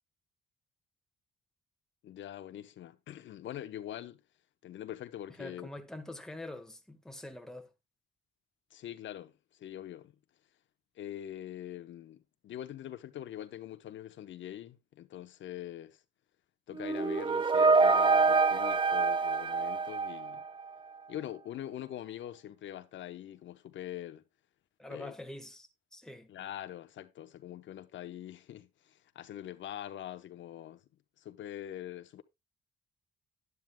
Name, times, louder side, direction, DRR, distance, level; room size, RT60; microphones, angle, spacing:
voice 1, 2.0-4.2 4.6-5.7 8.7-10.1 11.0-16.0 16.7-20.4 21.1-24.2 24.9-25.1 26.3-30.8 31.2-32.2, left 11 dB, 70° left, 0.9 m, -43 dB
voice 2, 5.4-7.7 24.8-26.3, left 1 dB, 5° left, 1.5 m, -45 dB
sound 1, 16.8-20.7, right 4 dB, 25° right, 0.5 m, -26 dB
11.0 x 10.5 x 2.2 m
cardioid pair, 90°, 20 cm